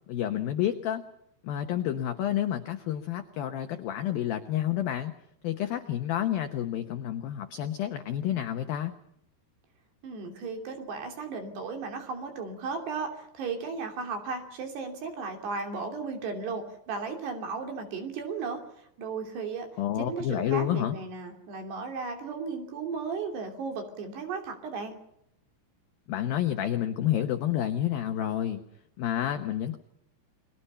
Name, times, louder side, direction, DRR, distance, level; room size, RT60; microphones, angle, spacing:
voice 1, 0.1-1.0 1.4-5.1 5.4-8.9 19.8-21.0 26.1-28.6 29.0-29.8, left 11 dB, 75° left, 7 dB, 2.2 m, -29 dB
voice 2, 10.0-18.6 19.0-19.7 20.0-24.9, right 4 dB, 60° right, 4 dB, 4.8 m, -35 dB
29.5 x 22.0 x 5.7 m, 0.76 s
omnidirectional pair, 5.7 m